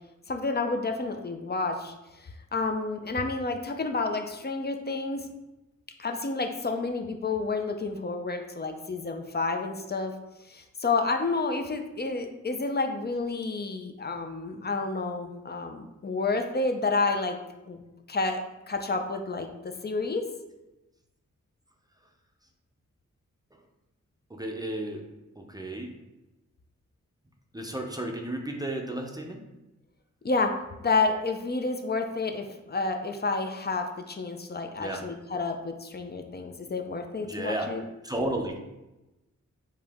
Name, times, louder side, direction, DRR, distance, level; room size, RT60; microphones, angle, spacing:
voice 1, 0.3-1.9 2.2-5.3 6.0-10.1 10.5-17.4 17.7-17.8 18.1-18.4 18.7-20.3 30.2-30.5 30.8-37.8, left 3 dB, 35° left, 5 dB, 0.5 m, -30 dB
voice 2, 24.3-25.0 25.4-25.9 27.5-29.4 34.8-35.0 37.3-37.7 38.0-38.6, right 1 dB, 15° right, 2 dB, 0.6 m, -33 dB
4.9 x 2.7 x 3.5 m, 1.0 s
wide cardioid pair, 75°, 30 cm